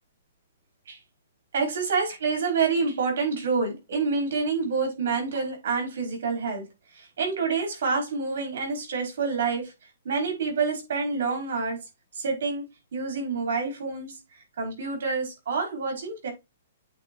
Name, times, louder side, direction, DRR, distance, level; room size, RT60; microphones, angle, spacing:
voice 1, 1.5-6.6 7.0-9.7 10.0-11.8 12.1-12.6 12.9-14.1 14.6-16.3, right 4 dB, 65° right, 5.1 m, -27 dB
8.5 x 4.5 x 4.6 m
hypercardioid pair, 170°, 0 cm